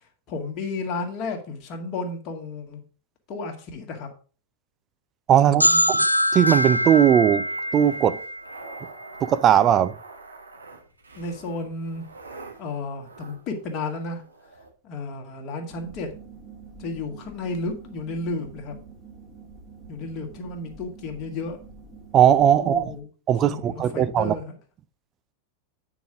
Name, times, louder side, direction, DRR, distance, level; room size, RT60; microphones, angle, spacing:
voice 1, 0.3-2.8 3.3-4.1 5.5-6.0 11.1-12.1 12.6-14.2 14.8-16.1 16.8-18.7 19.9-21.6 22.6-23.1 23.4-24.6, left 3 dB, 35° left, 2.0 m, -33 dB
voice 2, 5.3-6.1 6.3-8.2 9.2-9.9 22.1-22.9 23.3-24.4, right 10 dB, 30° right, 0.5 m, -19 dB
sound 1, 5.6-9.2, equal, 90° left, 0.4 m, -24 dB
sound 2, 6.2-14.7, right 3 dB, 75° right, 2.1 m, -46 dB
sound 3, 15.7-23.0, right 5 dB, 5° right, 2.1 m, -46 dB
9.2 x 5.0 x 5.0 m
figure-of-eight pair, 90°, 0 cm